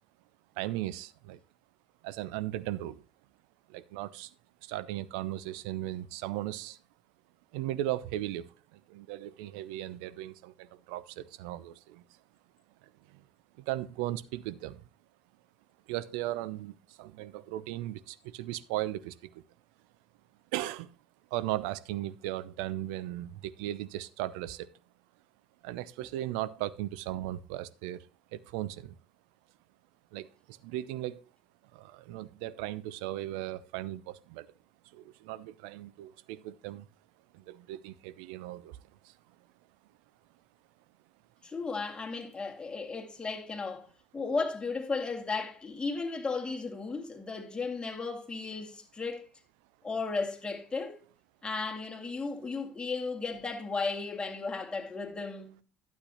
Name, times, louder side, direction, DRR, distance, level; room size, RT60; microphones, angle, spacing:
voice 1, 0.6-1.4 2.0-3.0 3.7-4.3 4.6-6.8 7.5-8.5 8.7-12.0 13.1-13.2 13.7-14.8 15.9-19.3 20.5-20.9 21.3-24.7 25.6-28.0 28.3-29.0 30.1-31.2 31.7-34.5 34.9-36.9 37.3-38.8 39.0-39.1, right 14 dB, 70° right, 0.5 m, -37 dB
voice 2, 41.4-49.3 49.8-51.0 51.4-55.6, left 4 dB, 20° left, 2.1 m, -35 dB
12.0 x 8.2 x 2.8 m
figure-of-eight pair, 55°, 5 cm